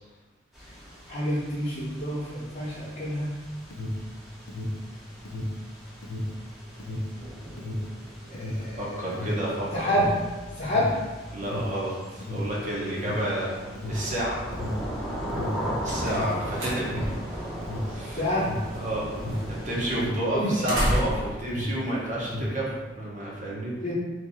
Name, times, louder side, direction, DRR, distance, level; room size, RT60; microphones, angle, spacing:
sound 1, 0.5-20.0, equal, ahead, 0.8 m, -39 dB
voice 1, 1.1-3.3 8.3-9.1 9.7-10.1 10.6-10.9 18.2-18.5 20.3-20.5 23.8-23.9, equal, 45° left, -10 dB, 0.9 m, -28 dB
Alarm, 3.5-21.2 21.4-22.7, left 1 dB, 85° left, 0.6 m, -33 dB
voice 2, 8.8-9.9 11.3-13.6 13.9-14.4 15.8-17.4 17.8-18.3 18.7-19.2 19.5-23.7, right 1 dB, 40° right, -5 dB, 1.0 m, -30 dB
sound 2, 15.5-22.8, equal, 75° right, 1.1 m, -35 dB
3.2 x 2.6 x 4.0 m, 1.2 s
head